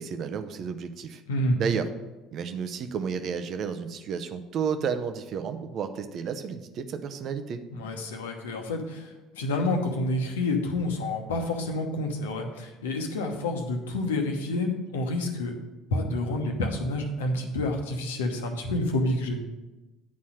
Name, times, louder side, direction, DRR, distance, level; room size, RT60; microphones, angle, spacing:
voice 1, 0.0-1.2 1.6-1.9 2.3-7.6, right 6 dB, 50° right, 9 dB, 0.7 m, -32 dB
voice 2, 1.3-1.6 7.7-15.5 15.9-19.4, left 2 dB, 75° left, 3 dB, 1.0 m, -28 dB
9.5 x 4.2 x 6.3 m, 1.1 s
figure-of-eight pair, 60°, 0 cm